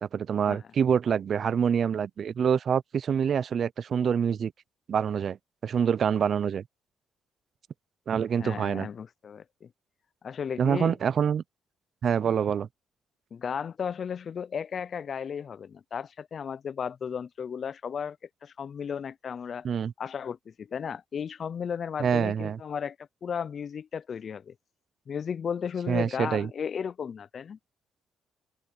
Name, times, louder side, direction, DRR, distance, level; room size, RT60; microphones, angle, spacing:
voice 1, 0.0-4.5 4.9-5.4 5.6-6.6 8.1-8.9 10.6-11.4 12.0-12.7 19.6-19.9 22.0-22.6 25.9-26.5, right 7 dB, 55° right, 0.5 m, -26 dB
voice 2, 8.4-9.7 10.2-11.0 13.3-18.2 18.4-19.7 20.0-23.0 23.2-24.5 25.1-27.6, left 7 dB, 50° left, 0.4 m, -34 dB
cardioid pair, 90°, 0 cm